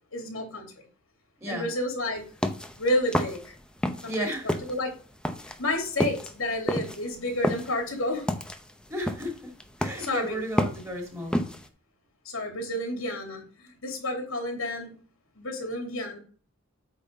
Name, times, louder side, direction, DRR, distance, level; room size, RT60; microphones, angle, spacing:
voice 1, 0.1-0.9 1.5-2.2 2.8-3.5 4.0-4.9 5.4-8.3 10.0-10.4 12.2-14.9 15.3-16.2, left 1 dB, 85° left, 2.8 m, -30 dB
voice 2, 1.4-1.7 4.0-4.5 8.9-9.5 9.8-11.4, equal, 15° right, 2.3 m, -33 dB
sound 1, 2.2-4.2 4.5-11.7, equal, 5° left, 0.7 m, -30 dB
8.5 x 4.1 x 5.2 m
head